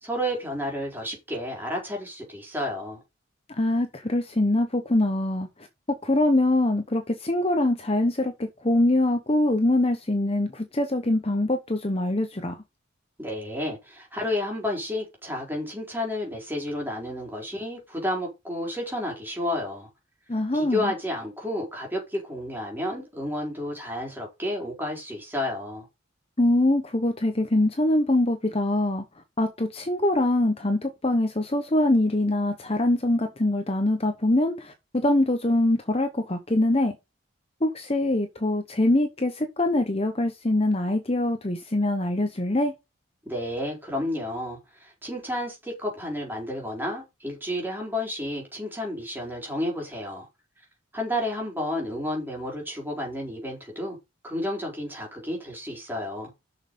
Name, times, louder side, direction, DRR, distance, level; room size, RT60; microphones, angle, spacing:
voice 1, 0.0-3.0 13.2-19.9 20.5-25.9 43.2-50.3 50.9-54.0 54.2-56.3, left 1 dB, 10° right, 4.4 m, -31 dB
voice 2, 3.5-5.5 6.0-12.6 20.3-20.9 26.4-29.0 29.4-37.0 37.6-42.7, left 1 dB, 30° left, 1.0 m, -23 dB
6.9 x 6.5 x 5.5 m
head